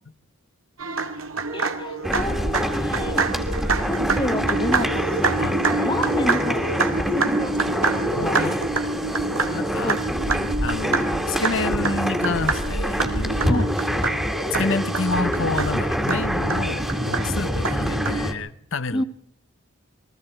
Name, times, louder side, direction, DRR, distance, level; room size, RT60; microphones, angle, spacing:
sound 1, 0.8-18.3, right 4 dB, 85° right, 2.1 m, -27 dB
voice 1, 1.5-3.3 3.8-7.8 8.2-8.6 8.9-9.3 9.8-10.3 13.5-13.7 18.9-19.0, left 1 dB, 20° left, 1.1 m, -31 dB
sound 2, 2.0-18.3, equal, ahead, 2.0 m, -26 dB
voice 2, 7.9-8.6 9.5-10.0 10.6-13.7 14.5-19.0, left 3 dB, 65° left, 0.9 m, -29 dB
28.5 x 22.0 x 4.5 m
head